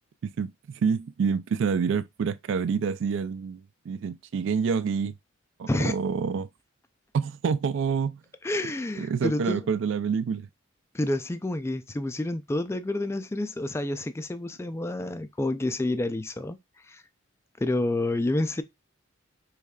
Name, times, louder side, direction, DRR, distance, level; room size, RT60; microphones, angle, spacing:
voice 1, 0.4-5.1 5.6-6.5 7.1-8.2 9.0-10.5, right 6 dB, 65° right, 0.3 m, -27 dB
voice 2, 8.4-9.6 10.9-16.6 16.9-17.0 17.6-18.6, left 2 dB, 15° left, 0.3 m, -29 dB
5.0 x 3.1 x 2.3 m
head